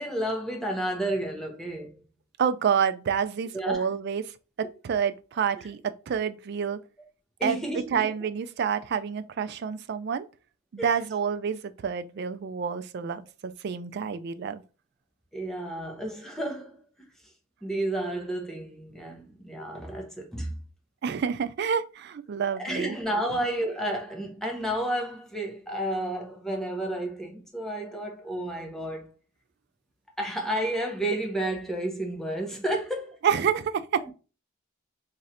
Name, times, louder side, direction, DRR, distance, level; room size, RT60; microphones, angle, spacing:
voice 1, 0.0-2.0 3.5-3.9 7.4-8.1 10.8-10.9 15.3-16.8 17.6-20.6 22.6-29.1 30.2-33.2 34.0-34.1, right 1 dB, ahead, 0.8 m, -31 dB
voice 2, 2.4-4.2 4.6-5.8 6.1-6.8 7.4-7.6 7.9-10.3 10.7-14.6 21.0-23.0 33.2-34.0, right 7 dB, 55° right, 0.3 m, -28 dB
3.1 x 2.5 x 4.2 m
head